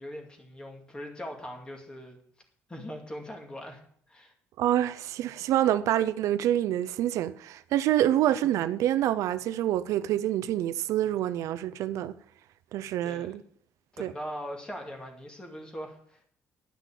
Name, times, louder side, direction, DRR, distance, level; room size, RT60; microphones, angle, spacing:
voice 1, 0.0-2.2 2.7-3.8 4.1-4.3 13.0-13.3 13.9-16.2, equal, 15° left, 2.3 m, -40 dB
voice 2, 4.6-12.1 12.7-13.4 14.0-14.1, right 12 dB, 80° right, 0.5 m, -27 dB
10.5 x 6.0 x 7.3 m
cardioid pair, 130°, 5 cm